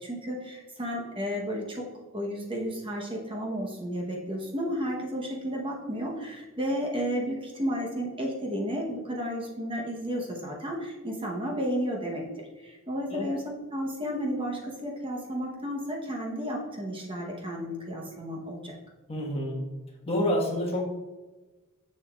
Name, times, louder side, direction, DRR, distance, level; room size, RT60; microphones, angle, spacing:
voice 1, 0.0-13.4 13.7-18.8, equal, 25° right, -1 dB, 0.9 m, -32 dB
voice 2, 19.1-19.6 20.0-20.9, left 1 dB, 30° left, -1 dB, 1.3 m, -28 dB
6.8 x 6.7 x 2.3 m, 1.2 s
head